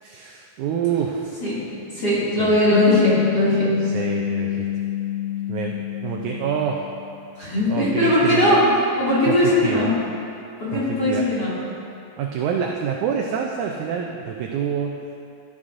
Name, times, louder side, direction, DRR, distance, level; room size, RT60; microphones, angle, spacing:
voice 1, 0.0-1.4 2.4-2.6 3.9-4.7 5.5-6.9 7.7-8.6 9.3-9.9 10.7-11.3 12.2-15.0, right 7 dB, 85° right, 1 dB, 1.7 m, -27 dB
voice 2, 1.9-3.7 7.4-8.7 9.0-9.9 10.6-11.5, left 1 dB, 30° left, -10 dB, 2.4 m, -19 dB
sound 1, 2.7-7.4, left 11 dB, 65° left, 0.9 m, -26 dB
12.5 x 9.9 x 2.5 m, 2.5 s
omnidirectional pair, 4.1 m